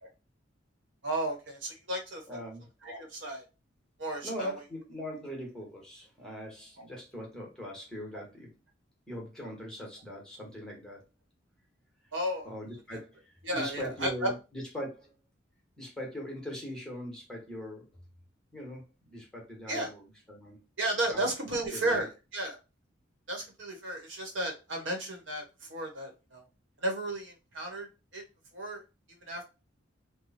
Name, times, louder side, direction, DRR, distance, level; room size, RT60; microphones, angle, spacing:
voice 1, 1.0-2.2 2.8-3.4 4.0-4.6 8.1-8.2 12.1-12.5 12.9-13.0 13.4-14.3 19.7-19.9 20.8-22.6 23.3-26.4 26.8-27.9 28.1-28.2 28.5-28.8 29.2-29.4, right 1 dB, 70° right, 1 dB, 1.1 m, -33 dB
voice 2, 2.3-2.7 4.2-8.5 9.1-11.0 12.4-15.1 15.8-17.9 18.5-20.6 21.1-22.1, equal, 5° left, -2 dB, 1.2 m, -41 dB
3.1 x 2.2 x 4.1 m, 0.29 s
head